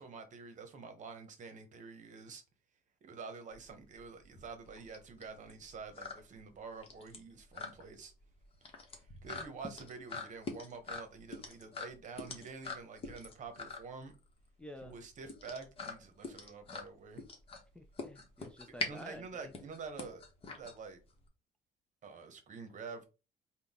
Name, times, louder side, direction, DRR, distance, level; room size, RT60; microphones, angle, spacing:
voice 1, 0.0-2.4 3.0-8.1 9.2-14.1 14.8-17.3 18.9-20.2 20.5-21.0 22.0-23.0, right 4 dB, 45° right, 1.0 m, -48 dB
sound 1, 3.5-21.3, left 3 dB, 35° left, 1.1 m, -45 dB
voice 2, 14.6-14.9 17.7-19.5, left 1 dB, 5° left, 0.4 m, -50 dB
3.8 x 2.3 x 3.6 m
cardioid pair, 110°, 17 cm